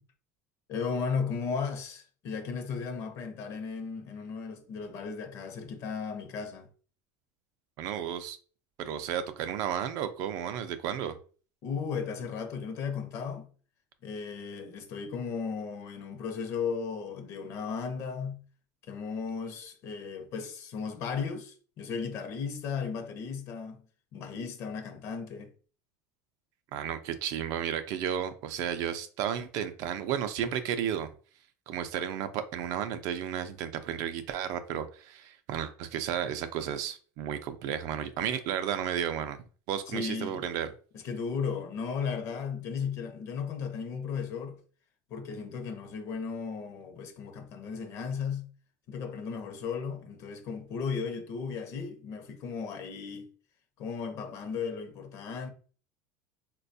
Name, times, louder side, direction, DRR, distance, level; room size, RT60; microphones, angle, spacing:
voice 1, 0.7-6.7 11.6-13.5 14.0-18.4 18.9-23.8 24.1-25.5 39.9-40.5 40.9-44.6 45.1-48.5 48.9-53.3 53.8-55.5, left 5 dB, 40° left, 0.6 m, -35 dB
voice 2, 7.8-8.4 8.8-11.2 26.7-31.1 31.7-40.7, right 9 dB, 50° right, 0.4 m, -33 dB
4.0 x 2.2 x 2.6 m
cardioid pair, 165°, 7 cm